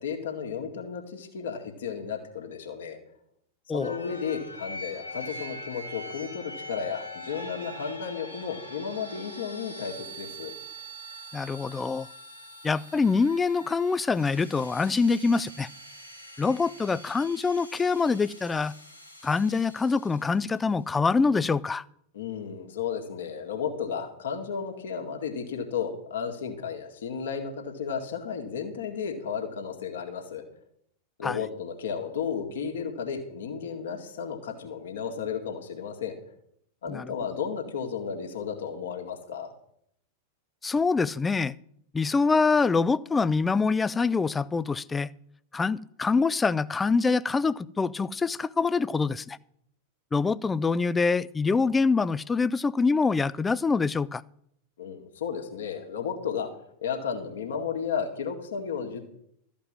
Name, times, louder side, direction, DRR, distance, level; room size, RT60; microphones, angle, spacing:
voice 1, 0.0-3.0 3.7-10.5 22.1-30.4 31.2-36.2 36.8-39.5 54.8-56.5 56.8-59.0, left 6 dB, 60° left, 1.9 m, -33 dB
sound 1, 3.8-20.5, equal, 90° left, 2.0 m, -43 dB
voice 2, 11.3-12.1 12.6-15.7 16.4-18.7 19.2-21.8 31.2-31.4 36.9-37.1 40.6-41.6 41.9-45.1 45.5-49.4 50.1-54.2, left 4 dB, 15° left, 0.4 m, -25 dB
13.5 x 5.2 x 8.8 m
figure-of-eight pair, 90°, 0 cm